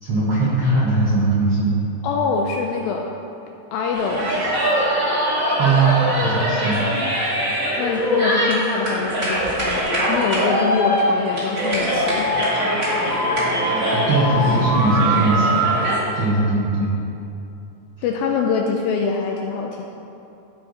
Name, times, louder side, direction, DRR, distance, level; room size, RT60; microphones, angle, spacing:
voice 1, 0.0-1.8 5.6-6.8 13.0-15.6 16.1-16.9, right 2 dB, 80° right, -8 dB, 1.2 m, -20 dB
voice 2, 2.0-3.1 3.7-4.6 7.8-12.3 18.0-19.8, left 5 dB, 85° left, 1 dB, 2.1 m, -24 dB
sound 1, 3.9-16.0, equal, 25° right, 2.0 m, -21 dB
14.5 x 5.0 x 4.0 m, 2.8 s
omnidirectional pair, 4.7 m